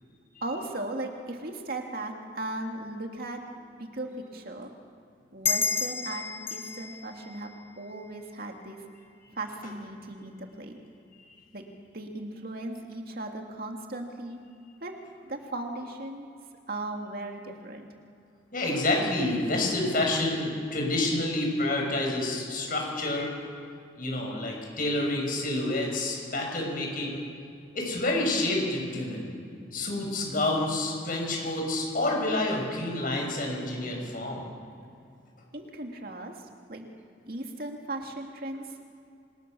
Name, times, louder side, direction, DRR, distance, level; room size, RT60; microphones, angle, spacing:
voice 1, 0.4-3.4 3.8-4.7 5.3-8.8 9.3-10.8 11.5-11.6 11.9-14.4 14.8-14.9 15.3-16.3 16.7-17.9 35.5-36.9 37.3-38.8, right 2 dB, 50° right, 2 dB, 2.5 m, -37 dB
sound 1, 5.4-8.5, left 4 dB, 15° left, 0.7 m, -32 dB
voice 2, 18.5-23.3 23.9-27.2 27.7-29.3 29.7-34.4, left 2 dB, 45° left, 0 dB, 7.6 m, -28 dB
27.0 x 26.0 x 7.0 m, 2.4 s
head